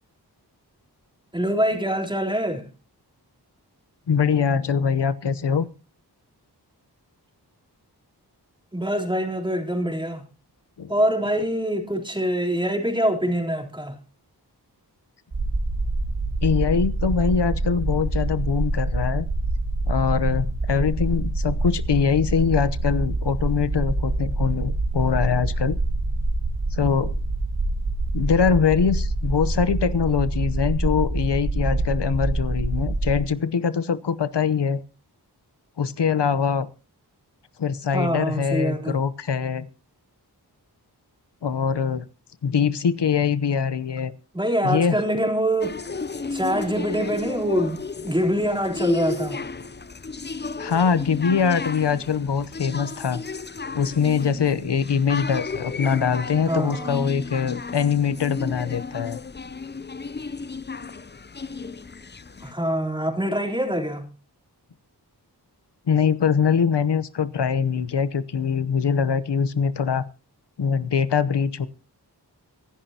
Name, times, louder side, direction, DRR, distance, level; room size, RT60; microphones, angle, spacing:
voice 1, 1.3-2.7 8.7-10.2 10.9-14.0 37.9-39.0 44.3-45.8 46.3-49.4 56.5-57.0 62.4-64.1, equal, 10° right, 3.7 m, -24 dB
voice 2, 4.1-5.7 10.8-10.9 16.4-19.3 19.9-25.8 26.7-27.1 28.1-34.8 35.8-36.7 37.6-39.7 41.4-42.0 42.4-44.1 44.6-45.0 50.6-53.2 53.7-59.2 65.9-70.0 70.6-71.7, left 6 dB, 90° left, 0.9 m, -23 dB
sound 1, 15.3-33.2, right 2 dB, 60° right, 3.0 m, -26 dB
sound 2, 45.6-62.5, left 4 dB, 25° left, 0.6 m, -34 dB
24.5 x 11.0 x 2.9 m
cardioid pair, 45°, 40 cm